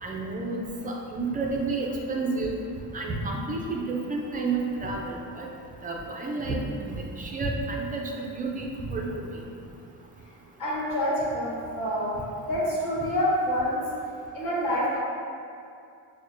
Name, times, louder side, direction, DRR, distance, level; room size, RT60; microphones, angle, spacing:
voice 1, 0.0-2.6 2.9-5.5 5.8-6.6 6.8-9.3, right 3 dB, 25° right, -1 dB, 0.3 m, -30 dB
voice 2, 10.6-13.8 14.3-15.0, equal, 55° left, -8 dB, 1.4 m, -27 dB
6.0 x 2.1 x 2.5 m, 2.5 s
cardioid pair, 135°, 39 cm